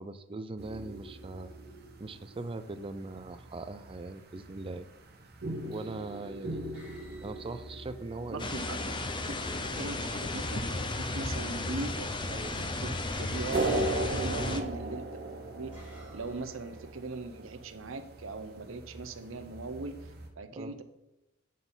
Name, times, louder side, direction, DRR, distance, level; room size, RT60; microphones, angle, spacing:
voice 1, 0.0-1.5 2.0-4.9 5.6-6.6 7.2-8.5 9.7-9.8 14.5-14.7 20.5-20.7, right 3 dB, 25° right, 11 dB, 0.4 m, -40 dB
sound 1, 0.6-20.3, right 2 dB, 55° right, 1.2 m, -40 dB
sound 2, 4.5-4.7 5.6-6.1 6.7-8.8 11.0-11.5 12.6-12.7 13.1-14.7 15.3-17.0, left 2 dB, 10° right, 2.5 m, -56 dB
voice 2, 8.3-10.6 11.0-12.5 12.8-15.2 15.5-15.8 16.1-20.8, right 3 dB, 70° right, 9 dB, 0.7 m, -40 dB
sound 3, 8.4-14.6, left 2 dB, 25° left, 0.6 m, -34 dB
9.3 x 4.0 x 5.5 m, 0.97 s
head